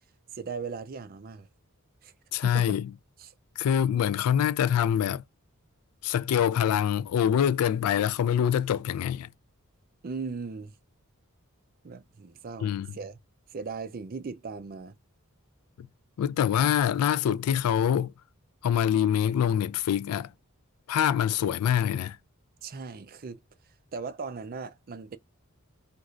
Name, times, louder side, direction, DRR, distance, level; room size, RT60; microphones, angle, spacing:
voice 1, 0.3-1.5 2.0-2.1 2.4-2.8 3.2-3.3 10.0-10.7 11.8-13.2 13.5-15.0 22.6-23.4 23.9-25.2, right 4 dB, 40° right, 0.4 m, -38 dB
voice 2, 2.3-2.9 3.6-5.2 6.0-9.3 12.6-12.9 15.8-15.9 16.2-18.1 18.6-20.3 20.9-22.2, left 9 dB, 85° left, 0.3 m, -25 dB
3.1 x 2.4 x 2.5 m
head